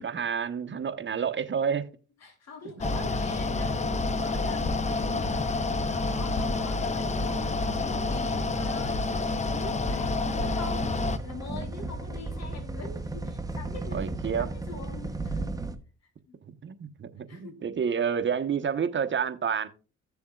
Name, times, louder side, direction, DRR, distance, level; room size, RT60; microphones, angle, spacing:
voice 1, 0.0-1.9 2.8-2.9 13.9-14.5 15.4-15.5 16.5-19.7, right 7 dB, 40° right, 1.0 m, -29 dB
voice 2, 2.2-9.2 9.4-10.9 11.2-14.0 14.4-15.6 16.3-16.4 17.3-17.6, left 4 dB, 60° left, 3.3 m, -44 dB
Mechanical fan, 2.8-11.2, left 3 dB, 25° left, 0.7 m, -28 dB
sound 1, 10.2-15.8, right 2 dB, 10° right, 0.9 m, -35 dB
15.5 x 7.0 x 2.4 m
cardioid pair, 90°, 30 cm